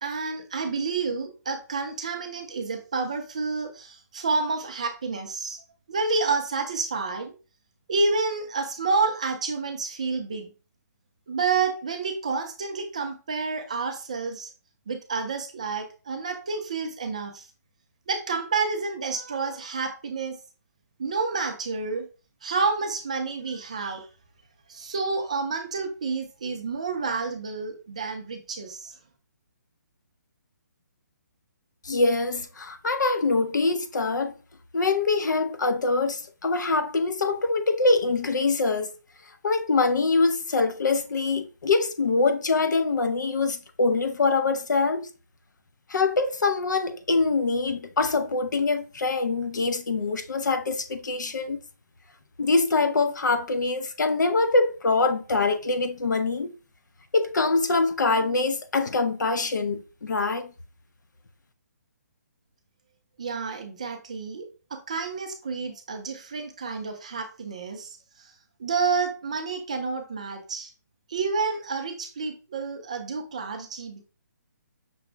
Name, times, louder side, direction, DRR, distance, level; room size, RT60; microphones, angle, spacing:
voice 1, 0.0-5.6 5.9-7.3 7.9-10.5 11.3-14.5 14.9-17.5 18.1-20.4 21.0-22.1 22.4-24.1 24.7-29.0 63.2-68.3 68.6-70.7 71.1-74.0, right 4 dB, 20° right, 0.4 m, -29 dB
voice 2, 31.8-34.3 34.7-38.9 39.4-45.1 45.9-51.6 52.4-56.5 57.1-60.5, left 3 dB, 85° left, 0.7 m, -24 dB
5.9 x 2.0 x 3.3 m
hypercardioid pair, 180°, 10 cm